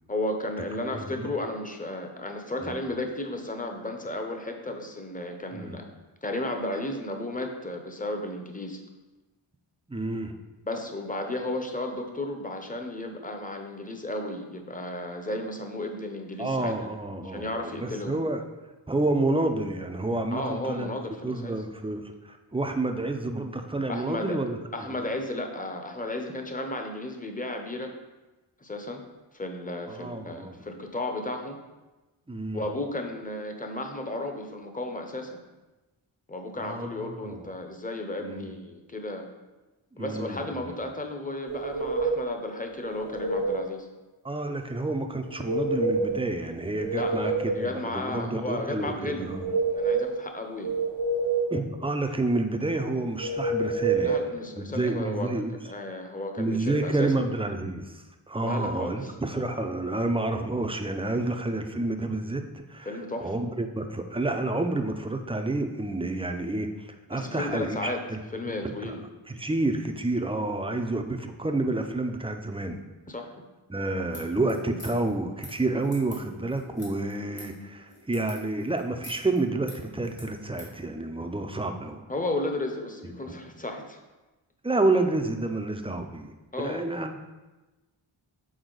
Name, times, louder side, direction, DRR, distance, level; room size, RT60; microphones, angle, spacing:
voice 1, 0.1-5.9 6.2-8.8 10.6-16.7 17.2-18.2 20.3-21.5 23.9-24.4 24.7-27.9 28.6-29.0 29.3-31.6 32.5-35.4 36.3-39.3 40.0-43.9 46.9-49.3 49.7-50.7 54.0-57.1 58.4-59.1 62.9-63.3 67.1-68.0 68.3-69.0 73.1-73.4 82.1-84.0 86.5-86.8, left 1 dB, 15° left, 4 dB, 0.8 m, -34 dB
voice 2, 0.9-1.3 2.6-2.7 5.5-5.7 9.9-10.4 16.4-18.4 18.9-20.9 21.2-24.6 24.8-25.0 29.9-30.5 32.3-32.6 36.6-37.5 38.2-38.5 39.9-40.7 44.2-49.4 51.5-54.2 54.6-55.5 56.4-62.9 63.2-68.2 68.6-69.0 69.3-72.8 73.7-82.0 83.3-83.4 84.6-86.3 86.6-87.2, right 2 dB, 10° right, 5 dB, 0.5 m, -29 dB
sound 1, 41.5-42.3 42.8-43.7 45.3-46.3 46.6-47.7 49.1-50.2 50.6-51.6 53.2-54.2, right 3 dB, 80° right, 1.1 m, -27 dB
sound 2, 74.1-80.7, left 1 dB, 75° left, 2.0 m, -47 dB
6.4 x 4.3 x 3.9 m, 1.1 s
wide cardioid pair, 65°, 50 cm